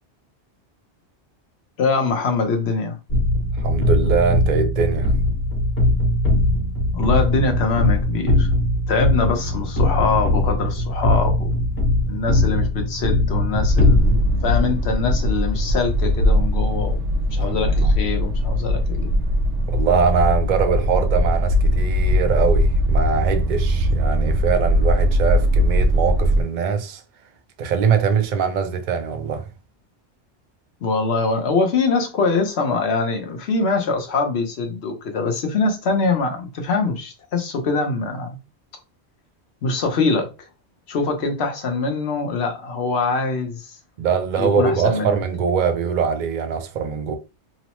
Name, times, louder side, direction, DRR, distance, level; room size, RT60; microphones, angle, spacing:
voice 1, 1.8-3.0 6.9-8.5 8.9-11.5 12.1-17.0 17.3-19.2 30.8-38.4 39.6-40.5 40.9-43.8 44.4-45.2, left 4 dB, 70° left, 1.0 m, -23 dB
sound 1, 3.1-14.0, left 1 dB, 45° left, 1.2 m, -20 dB
voice 2, 3.6-5.1 17.4-17.9 19.7-27.0 27.6-29.5 44.0-47.2, right 6 dB, 55° right, 0.6 m, -22 dB
sound 2, 13.5-26.4, equal, 85° right, 0.9 m, -20 dB
3.0 x 2.0 x 2.9 m
omnidirectional pair, 1.2 m